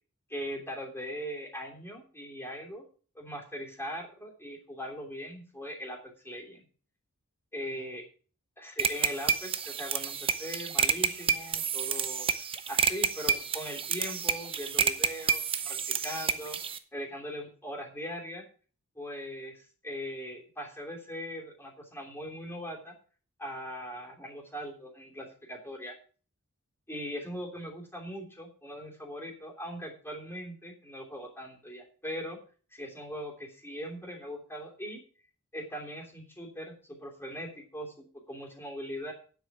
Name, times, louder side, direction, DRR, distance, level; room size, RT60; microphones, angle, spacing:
voice 1, 0.3-2.8 3.1-6.7 7.5-8.0 8.6-12.3 12.7-16.6 16.9-18.4 18.9-22.9 23.4-25.9 26.9-32.4 32.7-35.0 35.5-39.1, equal, 10° left, 0 dB, 3.1 m, -40 dB
sound 1, 8.8-16.8, right 7 dB, 25° right, 0.7 m, -29 dB
9.6 x 7.8 x 6.0 m, 0.40 s
head